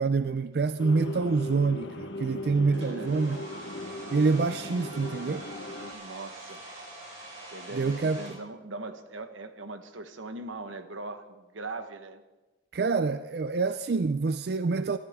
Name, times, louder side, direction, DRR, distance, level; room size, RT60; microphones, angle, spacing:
voice 1, 0.0-3.4 4.1-5.5 7.7-8.4 12.7-15.0, right 4 dB, 55° right, 0.4 m, -26 dB
sound 1, 0.8-5.9, left 1 dB, 75° left, 1.5 m, -39 dB
voice 2, 2.5-3.5 5.8-6.6 7.4-12.2, right 2 dB, 90° right, 1.2 m, -41 dB
Domestic sounds home sounds, 2.7-8.3, right 2 dB, 40° right, 4.9 m, -45 dB
25.0 x 13.5 x 3.6 m
head